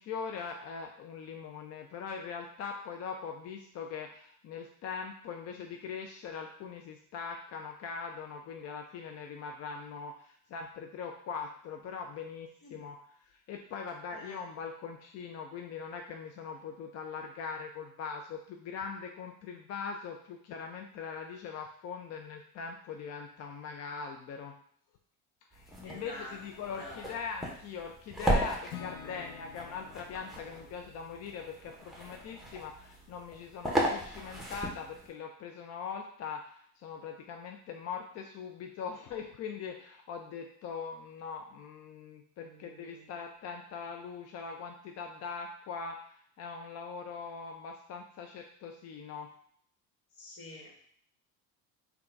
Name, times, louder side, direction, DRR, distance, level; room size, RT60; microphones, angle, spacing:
voice 1, 0.0-13.0 13.3-24.5 25.5-49.3, left 5 dB, 40° left, 3 dB, 0.4 m, -41 dB
sound 1, 25.5-35.1, right 1 dB, ahead, 0.8 m, -36 dB
voice 2, 25.8-26.4 26.8-27.1 29.0-29.5 42.4-43.1 50.2-50.9, left 2 dB, 60° left, 0 dB, 1.3 m, -48 dB
Acoustic guitar / Strum, 28.7-32.7, left 8 dB, 80° left, 0.7 m, -50 dB
3.7 x 2.3 x 4.5 m, 0.62 s
supercardioid pair, 110°, 40 cm